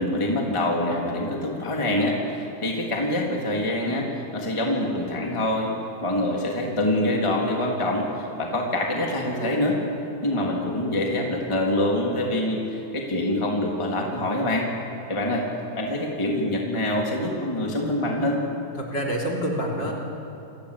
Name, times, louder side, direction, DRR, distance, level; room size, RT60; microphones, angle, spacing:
voice 1, 0.0-5.7 6.0-9.8 10.2-14.7 15.1-15.4 15.7-18.4, left 1 dB, 10° left, -1 dB, 3.0 m, -25 dB
voice 2, 18.8-19.9, equal, 30° left, 1 dB, 3.7 m, -27 dB
29.0 x 23.5 x 8.6 m, 2.9 s
omnidirectional pair, 3.9 m